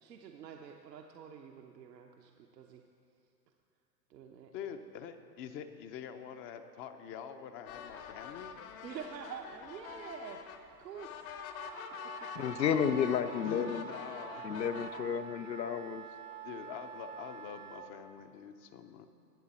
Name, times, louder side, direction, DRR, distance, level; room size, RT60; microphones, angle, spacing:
voice 1, 0.0-2.8 4.1-4.5 8.8-10.5 10.8-11.5 12.2-12.5, right 7 dB, 80° right, 2 dB, 1.0 m, -47 dB
voice 2, 4.5-8.5 13.4-14.6 16.4-19.1, left 8 dB, 25° left, 9 dB, 0.6 m, -45 dB
sound 1, 7.7-15.0, left 7 dB, 55° left, 1.2 m, -46 dB
Wind instrument woodwind instrument, 11.5-17.9, right 7 dB, 20° right, 0.4 m, -47 dB
voice 3, 12.3-13.9 14.4-16.0, left 8 dB, 90° left, 11 dB, 0.8 m, -32 dB
21.5 x 7.3 x 4.2 m, 2.6 s
hypercardioid pair, 115°, 49 cm